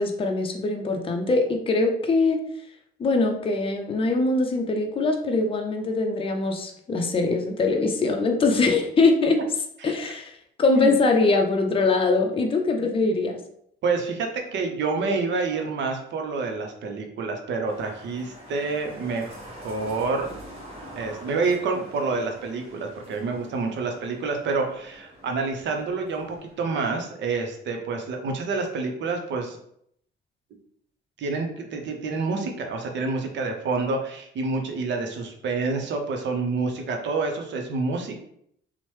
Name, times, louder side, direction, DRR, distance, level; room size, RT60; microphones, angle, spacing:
voice 1, 0.0-2.4 3.0-9.4 9.8-13.4, left 3 dB, 25° left, 3 dB, 0.5 m, -22 dB
voice 2, 13.8-20.3 21.0-29.6 31.2-38.2, right 4 dB, 65° right, 3 dB, 0.6 m, -28 dB
sound 1, 17.6-26.5, equal, 30° right, 1.0 m, -45 dB
2.9 x 2.1 x 3.1 m, 0.69 s
cardioid pair, 90°, 20 cm